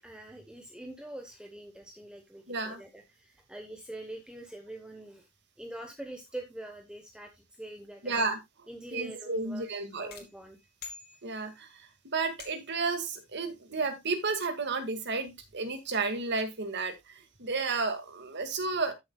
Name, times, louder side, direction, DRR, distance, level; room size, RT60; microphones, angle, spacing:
voice 1, 0.0-5.3 5.6-8.1 8.7-9.7 9.9-10.6, right 1 dB, 5° right, 3 dB, 1.1 m, -44 dB
voice 2, 2.5-2.8 8.0-8.4 8.9-10.1 11.2-18.9, right 4 dB, 55° right, 7 dB, 2.0 m, -32 dB
sound 1, 10.1-11.7 12.4-12.9, left 5 dB, 50° left, 2.8 m, -48 dB
13.5 x 7.2 x 2.3 m, 0.20 s
head